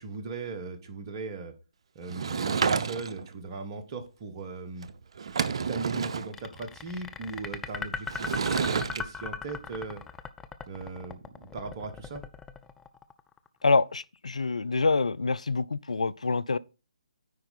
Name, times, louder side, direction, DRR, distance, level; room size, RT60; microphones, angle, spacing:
voice 1, 0.0-1.5 1.9-4.9 5.4-10.0 10.7-12.2, right 3 dB, 30° right, 1.1 m, -38 dB
Sliding door / Wood, 2.1-3.3 4.8-4.9 5.2-6.3 8.1-9.0, right 6 dB, 50° right, 0.6 m, -29 dB
sound 1, 6.3-13.5, left 5 dB, 10° left, 0.4 m, -38 dB
voice 2, 13.6-16.6, left 3 dB, 70° left, 0.4 m, -26 dB
9.4 x 4.5 x 4.1 m
figure-of-eight pair, 140°, 4 cm